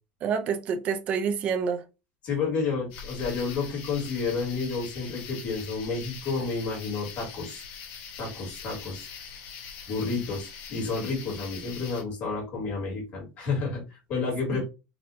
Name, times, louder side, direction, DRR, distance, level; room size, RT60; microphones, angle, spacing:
voice 1, 0.2-1.8 14.5-14.7, right 6 dB, 35° right, 0.5 m, -28 dB
voice 2, 2.2-7.6 8.2-9.1 9.9-14.7, left 4 dB, 40° left, 2.0 m, -30 dB
sound 1, 2.9-12.0, left 6 dB, 55° left, 1.2 m, -42 dB
4.1 x 2.7 x 2.7 m
cardioid pair, 170°, 4 cm